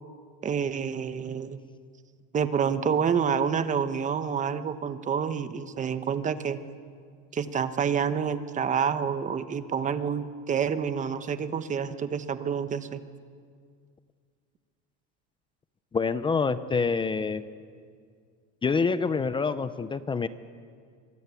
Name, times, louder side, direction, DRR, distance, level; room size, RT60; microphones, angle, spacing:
voice 1, 0.4-1.6 2.3-6.6 7.3-13.0, right 7 dB, 20° right, 11 dB, 1.1 m, -28 dB
voice 2, 15.9-17.4 18.6-20.3, left 5 dB, 15° left, 13 dB, 0.7 m, -26 dB
25.0 x 23.5 x 8.4 m, 2.1 s
cardioid pair, 155°, 33 cm